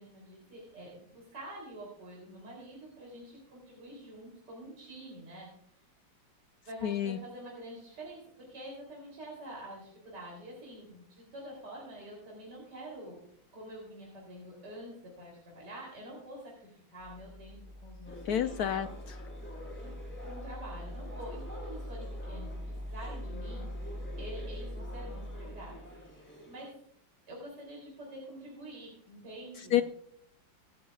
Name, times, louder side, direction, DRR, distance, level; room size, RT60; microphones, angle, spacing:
voice 1, 0.0-5.5 6.7-13.2 13.5-18.7 19.8-19.9 20.2-25.8 26.2-26.8 27.3-29.8, right 1 dB, 60° right, -3 dB, 3.9 m, -47 dB
voice 2, 6.8-7.2 18.3-19.2 29.7-29.8, left 10 dB, 75° left, 10 dB, 0.8 m, -29 dB
sound 1, 17.0-26.1, equal, 80° right, 4.7 m, -42 dB
sound 2, 18.0-26.7, left 1 dB, 5° left, 3.6 m, -49 dB
24.5 x 8.4 x 2.4 m, 0.64 s
omnidirectional pair, 2.1 m